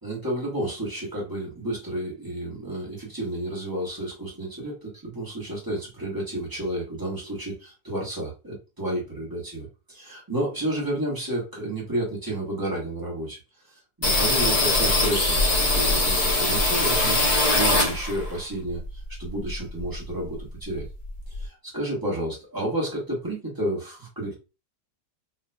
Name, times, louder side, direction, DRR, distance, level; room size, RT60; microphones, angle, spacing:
voice 1, 0.0-13.4 13.6-20.8 21.3-24.3, right 1 dB, 15° right, -3 dB, 1.3 m, -31 dB
sound 1, 14.0-18.4 18.7-20.1 20.4-20.5 20.7-21.4, left 2 dB, 40° left, 0.5 m, -22 dB
4.2 x 2.9 x 2.2 m, 0.29 s
omnidirectional pair, 2.0 m